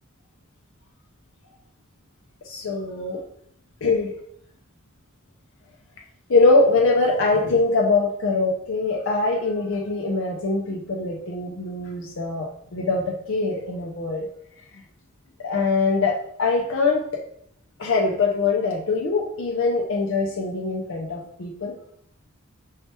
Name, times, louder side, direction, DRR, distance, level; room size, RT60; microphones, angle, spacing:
voice 1, 2.5-3.2 3.8-4.1 6.3-14.3 15.4-17.0 17.8-21.7, left 3 dB, 65° left, 0 dB, 0.6 m, -23 dB
5.5 x 3.3 x 2.9 m, 0.68 s
head